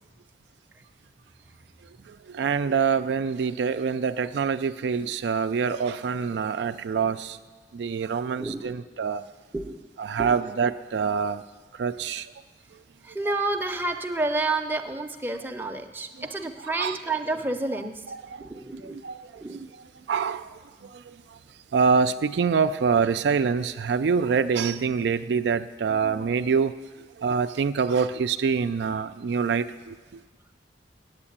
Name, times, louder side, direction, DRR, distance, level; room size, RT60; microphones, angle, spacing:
voice 1, 2.1-7.4 7.7-9.2 10.0-11.4 11.8-12.3 16.6-17.0 18.1-18.5 18.7-19.7 20.1-20.5 20.8-21.2 21.7-26.7 27.2-29.9, right 5 dB, 80° right, 0.4 m, -25 dB
voice 2, 8.4-8.8 9.5-9.8 10.2-10.4 13.0-18.0 18.4-19.0 19.4-19.6, right 2 dB, 10° right, 0.6 m, -30 dB
8.8 x 8.1 x 8.5 m
head